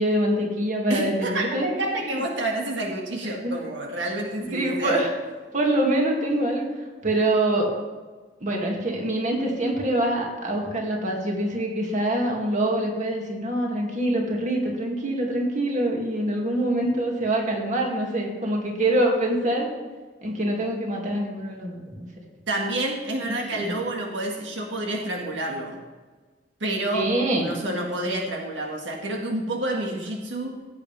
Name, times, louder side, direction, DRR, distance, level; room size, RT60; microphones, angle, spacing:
voice 1, 0.0-1.7 2.1-2.2 3.4-3.5 4.5-5.1 5.5-6.7 7.0-7.7 8.4-19.7 20.2-22.1 23.2-23.8 26.9-27.5, right 1 dB, 40° right, 0 dB, 2.2 m, -25 dB
voice 2, 0.9-5.1 22.5-25.8 26.6-30.5, right 1 dB, 85° right, 0 dB, 1.7 m, -29 dB
16.5 x 8.5 x 3.4 m, 1.3 s
head